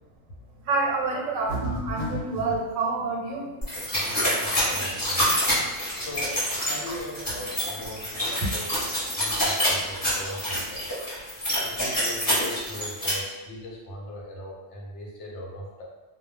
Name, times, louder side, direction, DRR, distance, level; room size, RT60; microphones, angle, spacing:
voice 1, 0.7-3.5, right 3 dB, 85° right, 0 dB, 1.0 m, -28 dB
sound 1, 1.5-2.6, right 1 dB, 60° right, 0.7 m, -32 dB
sound 2, 3.6-13.1, equal, 20° left, 0.8 m, -27 dB
voice 2, 3.9-5.3 5.9-8.8 9.2-10.9 11.6-15.8, left 1 dB, 70° left, -2 dB, 0.8 m, -39 dB
2.2 x 2.1 x 3.1 m, 1.1 s
omnidirectional pair, 1.3 m